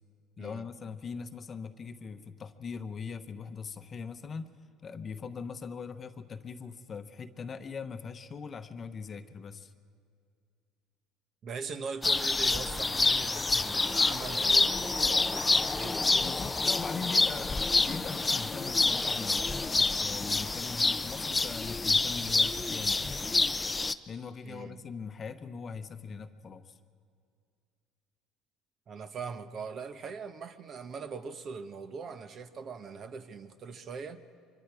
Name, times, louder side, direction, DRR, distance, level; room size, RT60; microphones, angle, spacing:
voice 1, 0.4-4.5 4.8-9.7 16.2-23.5 24.1-26.8, left 5 dB, 35° left, 9 dB, 1.0 m, -41 dB
voice 2, 11.4-16.5 24.4-24.8 28.9-34.2, right 5 dB, 45° right, 9 dB, 1.2 m, -41 dB
sound 1, 12.0-23.9, left 3 dB, 15° left, 0.6 m, -27 dB
24.5 x 23.0 x 4.9 m, 2.2 s
supercardioid pair, 100°, 0 cm